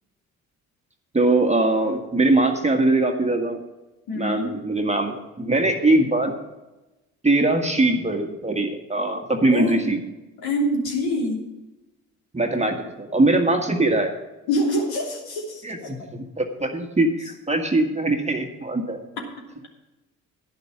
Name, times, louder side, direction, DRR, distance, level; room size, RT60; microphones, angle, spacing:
voice 1, 1.1-3.6 4.2-6.4 7.2-10.0 12.3-14.1 15.6-15.8 16.1-19.0, right 2 dB, 15° right, 3 dB, 1.7 m, -21 dB
voice 2, 4.1-4.6 9.5-9.9 10.4-11.5 14.5-16.1, left 1 dB, 65° left, 0 dB, 3.1 m, -25 dB
11.0 x 10.5 x 5.9 m, 1.0 s
figure-of-eight pair, 50°, 40 cm